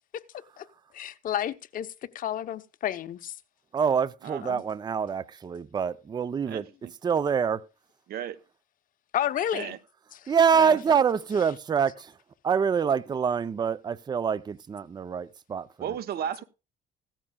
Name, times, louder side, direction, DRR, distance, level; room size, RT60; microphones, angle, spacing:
voice 1, 0.9-1.9 2.1-3.3 4.4-4.6 9.1-9.8 10.1-10.2, left 10 dB, 55° left, 0.8 m, -31 dB
voice 2, 3.7-6.7 7.0-7.6 10.3-12.1 12.4-15.7, right 6 dB, 25° right, 0.5 m, -25 dB
voice 3, 6.5-6.9 8.1-8.4 9.5-9.8 10.5-10.8 15.8-16.4, right 9 dB, 65° right, 0.9 m, -34 dB
16.0 x 13.5 x 2.3 m
cardioid pair, 110°, 17 cm